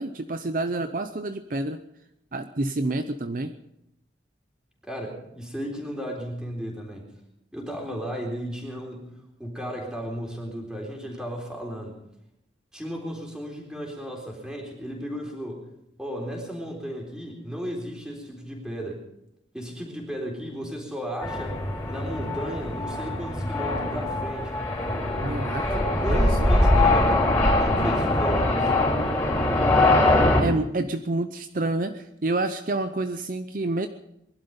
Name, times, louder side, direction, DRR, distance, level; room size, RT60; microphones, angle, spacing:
voice 1, 0.0-1.8 2.3-3.5 25.2-25.7 26.1-26.5 30.0-33.9, right 2 dB, 45° right, 8 dB, 0.7 m, -28 dB
voice 2, 4.8-7.1 7.5-12.0 12.7-15.7 16.0-19.0 19.5-24.6 25.6-28.8, equal, 5° right, -1 dB, 3.8 m, -35 dB
sound 1, 21.2-30.4, left 2 dB, 15° left, 4.8 m, -22 dB
21.5 x 12.0 x 5.4 m, 0.80 s
head